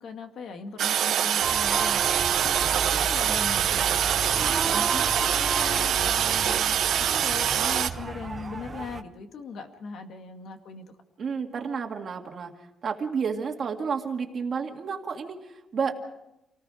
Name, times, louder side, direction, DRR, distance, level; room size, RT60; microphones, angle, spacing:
voice 1, 0.0-2.6 3.0-4.2 4.7-10.8, left 5 dB, 60° left, 5 dB, 2.2 m, -39 dB
Toilet flush, 0.8-7.9, right 10 dB, 65° right, 1.0 m, -24 dB
sound 1, 1.4-9.0, right 4 dB, 25° right, 0.9 m, -35 dB
sound 2, 2.5-8.5, right 1 dB, 5° left, 1.5 m, -39 dB
voice 2, 11.2-12.5 12.8-15.9, right 6 dB, 40° right, 3 dB, 2.1 m, -31 dB
28.5 x 19.0 x 5.1 m, 0.89 s
cardioid pair, 180°, 0 cm